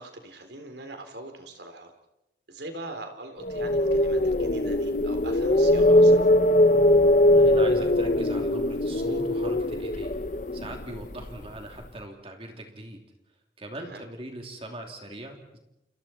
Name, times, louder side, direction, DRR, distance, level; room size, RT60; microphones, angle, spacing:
voice 1, 0.0-1.9 2.5-6.2 13.8-14.0, right 2 dB, 75° right, 6 dB, 3.4 m, -42 dB
sound 1, 3.4-11.5, left 1 dB, 45° left, 0.9 m, -21 dB
voice 2, 7.2-10.2 10.5-13.0 13.6-15.6, right 1 dB, 30° right, 3 dB, 3.1 m, -40 dB
29.5 x 28.5 x 4.4 m, 0.90 s
head